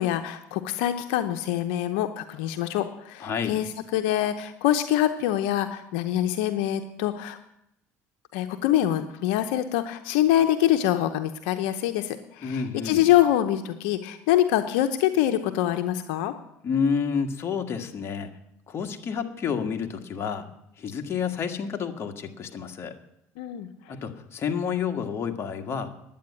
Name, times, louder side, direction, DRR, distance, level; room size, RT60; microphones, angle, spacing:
voice 1, 0.0-7.4 8.3-16.3 23.4-23.7, left 12 dB, 85° left, 8 dB, 0.8 m, -25 dB
voice 2, 3.2-3.6 12.4-13.1 16.6-18.3 18.7-20.5 20.8-22.9 23.9-25.9, left 6 dB, 45° left, 5 dB, 1.7 m, -29 dB
10.5 x 8.5 x 9.7 m, 0.80 s
supercardioid pair, 90°, 6 cm